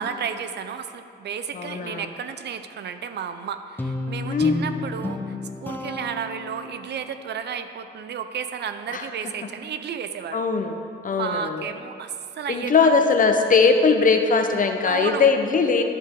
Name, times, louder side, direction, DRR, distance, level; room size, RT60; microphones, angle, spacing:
voice 1, 0.0-5.3 5.6-10.4 11.1-13.0 14.8-15.2, right 7 dB, 60° right, 9 dB, 0.6 m, -32 dB
voice 2, 1.5-2.0 4.3-4.6 8.9-9.0 10.3-10.7 11.0-11.5 12.5-15.8, left 4 dB, 45° left, 5 dB, 1.0 m, -20 dB
Guitar, 3.8-7.1, left 2 dB, 10° left, 1.1 m, -31 dB
11.0 x 10.5 x 3.8 m, 2.5 s
cardioid pair, 90°, 20 cm